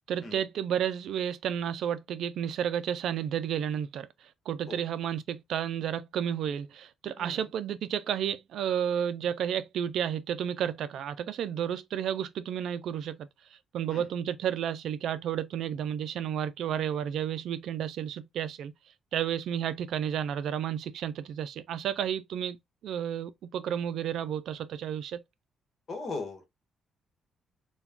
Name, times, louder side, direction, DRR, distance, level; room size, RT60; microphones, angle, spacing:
voice 1, 0.0-4.1 4.5-13.3 13.7-18.7 19.1-22.6 22.8-25.2, right 9 dB, 75° right, 0.3 m, -32 dB
voice 2, 25.9-26.4, left 3 dB, 45° left, 1.1 m, -38 dB
2.3 x 2.3 x 3.4 m
cardioid pair, 90°, 0 cm